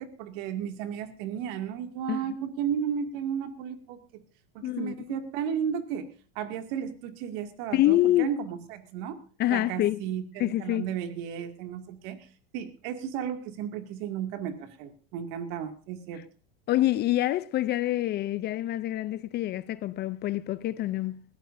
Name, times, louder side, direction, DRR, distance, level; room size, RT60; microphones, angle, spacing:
voice 1, 0.0-4.2 4.5-9.2 9.5-12.3 12.5-16.2, right 8 dB, 60° right, 2.4 m, -34 dB
voice 2, 4.6-5.2 7.7-8.3 9.4-10.0 10.4-10.9 16.7-21.2, left 14 dB, 35° left, 0.5 m, -26 dB
20.5 x 15.5 x 2.7 m
supercardioid pair, 130°, 31 cm